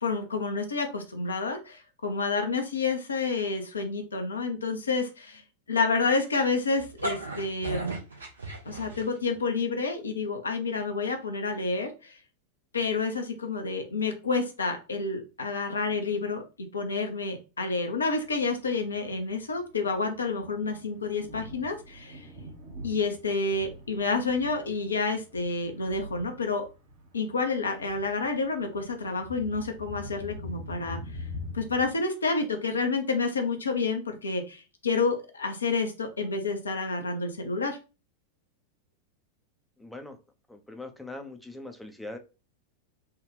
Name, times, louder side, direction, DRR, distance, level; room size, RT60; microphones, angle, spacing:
voice 1, 0.0-5.4 5.7-7.9 8.6-12.2 12.7-16.4 16.7-22.3 22.8-26.6 27.1-31.0 31.5-37.8, left 4 dB, 75° left, 4 dB, 0.6 m, -29 dB
sound 1, 6.8-9.4, right 2 dB, 75° right, 0.9 m, -35 dB
Thunder, 18.3-31.9, left 1 dB, 50° right, 1.1 m, -44 dB
voice 2, 39.8-40.2 40.5-42.2, left 2 dB, 5° left, 5 dB, 0.5 m, -41 dB
3.4 x 2.3 x 3.1 m, 0.30 s
figure-of-eight pair, 90°, 0 cm